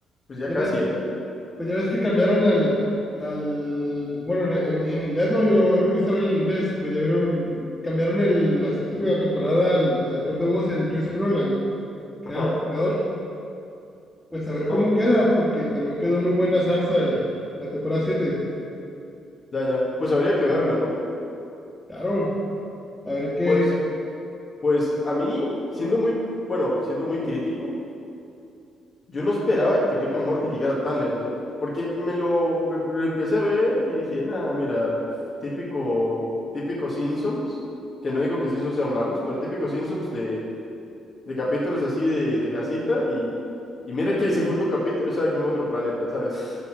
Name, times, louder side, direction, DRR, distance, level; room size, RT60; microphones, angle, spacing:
voice 1, 0.3-0.9 12.3-12.5 14.7-14.8 19.5-20.9 23.5-23.7 24.6-26.1 26.5-27.7 29.1-31.3 31.6-35.0 35.4-36.3 36.5-37.6 38.0-40.4 41.3-43.3 43.9-46.6, left 1 dB, 45° left, -6 dB, 1.9 m, -24 dB
voice 2, 1.6-2.8 3.2-11.6 12.3-13.0 14.3-17.2 17.6-18.4 21.9-22.3 23.0-23.7, left 1 dB, 15° left, -8 dB, 2.1 m, -23 dB
12.0 x 4.3 x 6.4 m, 2.6 s
cardioid pair, 90°, 0 cm